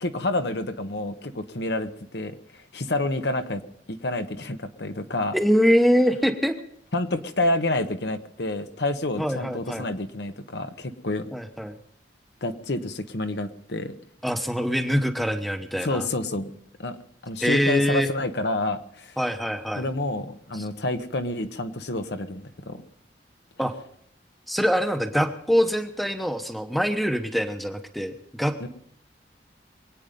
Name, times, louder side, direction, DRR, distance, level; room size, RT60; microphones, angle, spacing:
voice 1, 0.0-2.3 2.7-3.6 4.0-5.3 6.9-11.3 12.4-13.9 15.8-16.5 16.8-17.0 17.2-19.1 19.8-22.8 28.6-28.7, left 2 dB, 70° left, 8 dB, 1.2 m, -28 dB
voice 2, 5.3-6.5 9.2-9.9 11.3-11.7 14.2-16.1 17.4-18.1 19.2-19.9 20.5-20.6 23.6-23.7 24.5-28.7, equal, ahead, 7 dB, 1.0 m, -24 dB
24.0 x 9.1 x 5.2 m, 0.69 s
head